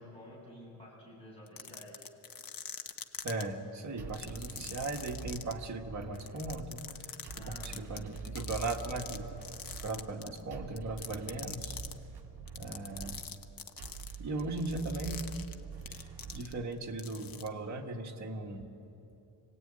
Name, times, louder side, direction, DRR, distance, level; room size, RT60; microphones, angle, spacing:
voice 1, 0.0-2.1 7.4-8.1, left 1 dB, 15° left, -5 dB, 7.6 m, -51 dB
sound 1, 1.5-3.4 4.1-5.5 6.2-9.2 9.4-10.4 10.8-11.9 12.5-16.7 17.0-17.5, left 7 dB, 55° left, 1.2 m, -43 dB
voice 2, 3.2-7.1 7.4-9.4 9.8-11.8 12.5-13.2 14.2-15.3 15.9-18.7, right 2 dB, 40° right, 1 dB, 1.9 m, -38 dB
sound 2, 4.0-17.0, right 5 dB, 70° right, 1.9 m, -46 dB
27.0 x 19.0 x 9.0 m, 3.0 s
wide cardioid pair, 165°, 42 cm